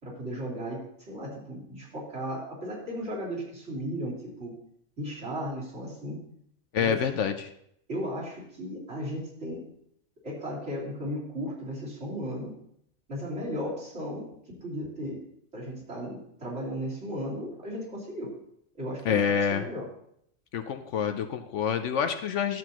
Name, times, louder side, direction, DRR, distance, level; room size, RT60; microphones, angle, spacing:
voice 1, 0.0-4.5 5.0-6.2 6.8-7.1 7.9-9.7 10.2-12.5 13.1-14.3 14.6-15.2 15.5-18.3 18.8-19.9, equal, 55° right, -7 dB, 3.6 m, -35 dB
voice 2, 6.7-7.5 19.1-19.6 20.5-22.6, left 7 dB, 65° left, 8 dB, 0.9 m, -27 dB
12.5 x 7.8 x 2.9 m, 0.72 s
omnidirectional pair, 1.4 m